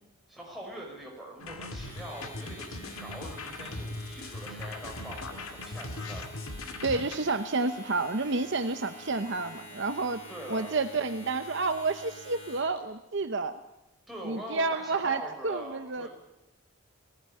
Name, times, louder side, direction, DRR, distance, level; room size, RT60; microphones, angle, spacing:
voice 1, 0.3-6.2 10.3-10.8 14.1-16.1, right 1 dB, ahead, -2 dB, 5.3 m, -43 dB
sound 1, 1.4-7.2, left 2 dB, 85° left, 1.9 m, -39 dB
Domestic sounds home sounds, 1.6-12.8, equal, 30° left, 7.0 m, -48 dB
voice 2, 6.8-10.2 10.5-13.5 14.2-16.1, right 3 dB, 55° right, 9 dB, 0.8 m, -30 dB
19.0 x 15.5 x 9.8 m, 0.97 s
head